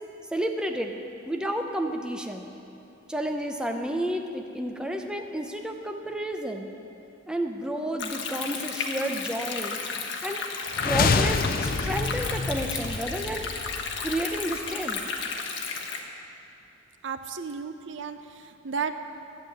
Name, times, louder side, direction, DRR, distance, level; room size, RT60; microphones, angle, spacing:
voice 1, 0.3-1.0 1.2-2.5 3.1-6.7 7.3-9.8 10.2-10.4 10.8-13.5 14.0-15.0, right 1 dB, 5° right, 3 dB, 0.7 m, -31 dB
Stream, 8.0-16.0, left 5 dB, 65° left, 1.2 m, -33 dB
sound 1, 10.7-14.7, left 4 dB, 45° left, 0.5 m, -28 dB
voice 2, 17.0-18.9, right 5 dB, 65° right, 9 dB, 0.6 m, -33 dB
11.0 x 7.6 x 9.0 m, 2.8 s
head